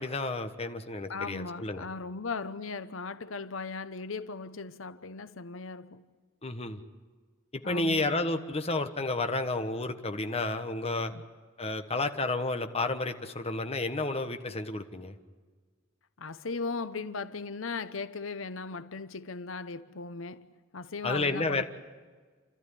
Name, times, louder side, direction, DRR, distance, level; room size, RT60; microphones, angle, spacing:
voice 1, 0.0-1.8 6.4-6.8 7.5-11.1 11.6-15.2 21.0-21.6, left 2 dB, 30° left, 1.3 m, -31 dB
voice 2, 1.1-6.1 7.6-8.2 11.1-11.2 16.2-21.6, left 4 dB, 80° left, 0.9 m, -38 dB
29.5 x 13.5 x 10.0 m
head